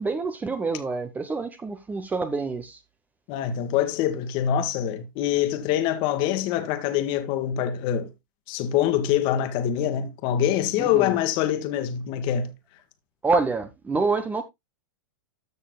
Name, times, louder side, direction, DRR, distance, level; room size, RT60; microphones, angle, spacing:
voice 1, 0.0-2.8 10.8-11.2 13.2-14.4, right 4 dB, 15° right, 1.0 m, -27 dB
voice 2, 3.3-8.1 8.5-12.5, left 10 dB, 45° left, 1.7 m, -25 dB
13.5 x 6.4 x 2.3 m
hypercardioid pair, 105°, 11 cm